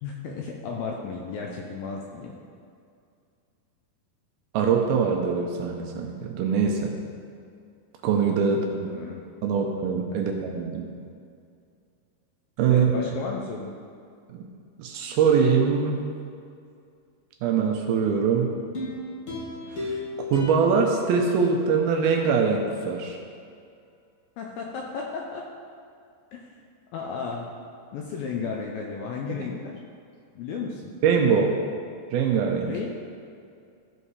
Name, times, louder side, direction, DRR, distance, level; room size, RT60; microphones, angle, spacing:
voice 1, 0.0-2.3 8.9-9.2 10.1-10.3 12.7-13.7 24.4-25.4 26.3-26.5 26.9-27.5 27.9-29.7 30.4-30.9 32.7-32.9, left 5 dB, 80° left, 0 dB, 2.1 m, -34 dB
voice 2, 4.5-6.9 8.0-8.9 9.4-10.9 12.6-12.9 14.3-14.4 14.8-16.0 17.4-18.5 19.7-20.0 20.3-23.2 29.3-29.5 31.0-31.6 32.1-32.7, right 6 dB, 75° right, 2 dB, 2.4 m, -23 dB
sound 1, 18.7-22.0 22.5-22.6, left 2 dB, 50° left, 1.7 m, -36 dB
14.5 x 5.3 x 4.8 m, 2.4 s
omnidirectional pair, 4.8 m